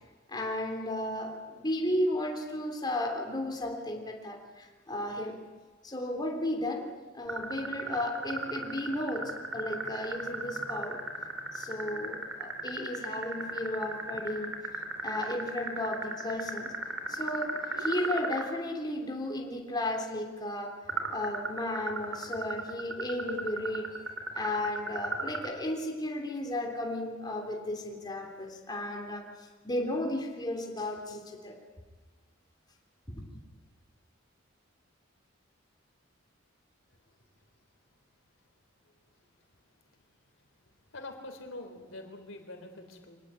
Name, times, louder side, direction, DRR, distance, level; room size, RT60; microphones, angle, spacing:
voice 1, 0.3-5.4 5.8-6.9 7.1-11.0 11.5-14.5 15.0-16.7 17.1-20.7 21.1-23.9 24.3-31.6 33.1-33.2, left 1 dB, 20° left, 1 dB, 3.4 m, -34 dB
sound 1, 7.3-18.5 20.9-25.5, right 3 dB, 85° right, 3.2 m, -35 dB
voice 2, 40.9-43.2, left 2 dB, 75° left, 6 dB, 3.7 m, -45 dB
25.5 x 19.0 x 8.9 m, 1.4 s
head